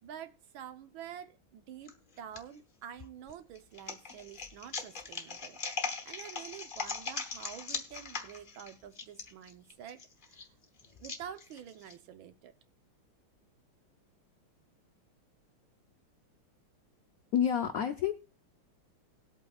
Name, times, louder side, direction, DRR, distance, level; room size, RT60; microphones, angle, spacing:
voice 1, 0.0-10.5 11.0-12.5, right 9 dB, 70° right, 9 dB, 1.5 m, -48 dB
sound 1, 1.9-2.4 3.0-11.9, left 5 dB, 40° left, 0.7 m, -40 dB
voice 2, 17.3-18.1, left 9 dB, 85° left, 7 dB, 0.7 m, -28 dB
19.0 x 8.3 x 2.3 m, 0.37 s
omnidirectional pair, 2.3 m